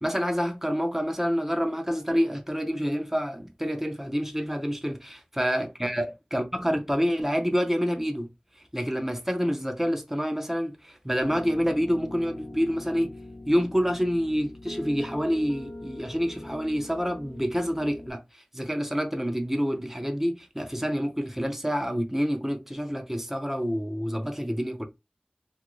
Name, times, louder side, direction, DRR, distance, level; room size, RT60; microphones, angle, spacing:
voice 1, 0.0-4.9 5.4-8.3 8.7-13.1 13.5-24.9, equal, 10° right, 0.7 m, -27 dB
Piano, 11.2-18.1, left 1 dB, 40° left, 0.8 m, -42 dB
2.8 x 2.5 x 3.0 m
wide cardioid pair, 45°, 3 cm